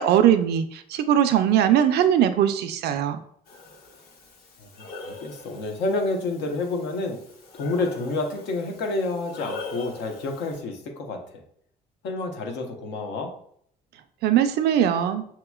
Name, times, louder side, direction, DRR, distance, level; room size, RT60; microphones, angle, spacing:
voice 1, 0.0-3.2 14.2-15.3, right 10 dB, 75° right, 9 dB, 0.5 m, -20 dB
Breathing, 3.5-10.6, left 2 dB, 65° left, 1.0 m, -42 dB
voice 2, 4.6-7.2 7.5-11.4 12.0-13.3, left 3 dB, 85° left, 3 dB, 0.9 m, -29 dB
6.0 x 2.9 x 2.3 m, 0.65 s
cardioid pair, 110°, 17 cm